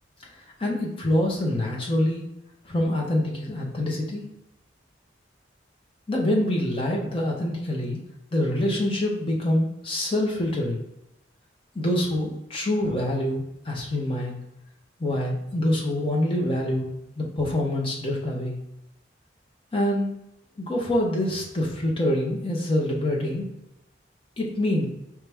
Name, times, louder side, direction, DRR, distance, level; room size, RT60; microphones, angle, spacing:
voice 1, 0.6-2.3 2.6-4.2 6.1-8.0 8.3-10.8 11.7-14.4 15.0-16.9 17.2-18.6 19.7-20.1 20.6-23.4 24.4-24.8, left 1 dB, 30° left, -2 dB, 0.9 m, -25 dB
4.6 x 3.2 x 3.4 m, 0.87 s
head